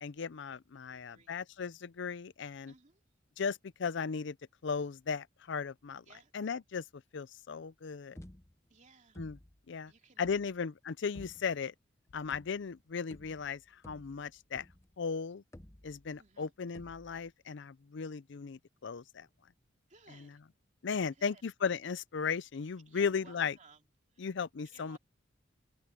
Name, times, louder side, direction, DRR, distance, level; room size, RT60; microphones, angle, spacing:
voice 1, 0.0-2.7 3.4-4.4 4.6-6.0 6.3-6.8 7.1-8.2 9.2-9.4 9.7-9.9 10.2-11.7 12.1-14.7 15.0-15.4 15.8-19.3 20.1-20.3 20.8-23.5 24.2-25.0, left 5 dB, 65° left, 0.5 m, -36 dB
voice 2, 0.9-1.4 2.7-3.0 6.0-6.3 8.7-9.2 9.9-10.5 16.2-16.5 19.9-20.4 21.1-21.4 22.9-23.9 24.1-24.3 24.6-25.0, right 4 dB, 40° right, 2.6 m, -60 dB
sound 1, 8.2-8.8 9.1-9.7 10.2-10.6 11.1-11.7 12.3-12.8 13.1-15.0 15.5-16.3 16.7-17.3, left 1 dB, 15° left, 0.9 m, -53 dB
open air
head